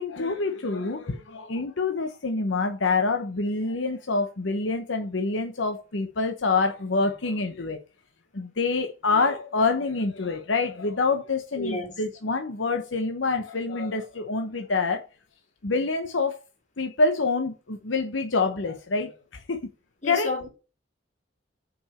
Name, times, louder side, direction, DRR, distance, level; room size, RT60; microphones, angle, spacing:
voice 1, 0.0-7.8 8.3-15.0 15.6-16.4 16.8-19.6 20.0-20.3, left 3 dB, 75° left, 0.9 m, -26 dB
voice 2, 11.6-11.9 20.0-20.5, left 3 dB, 40° left, 3.5 m, -30 dB
5.8 x 5.3 x 6.6 m
head